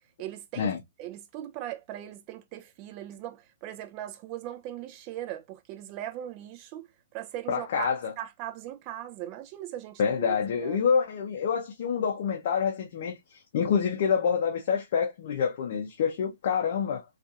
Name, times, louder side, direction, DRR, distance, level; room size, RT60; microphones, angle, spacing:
voice 1, 0.2-0.7 1.0-7.9 8.2-10.8, right 12 dB, 35° right, 0.4 m, -39 dB
voice 2, 7.5-8.1 10.0-13.2 13.5-17.0, left 7 dB, 55° left, 0.5 m, -27 dB
2.7 x 2.4 x 2.3 m
hypercardioid pair, 130°, 0 cm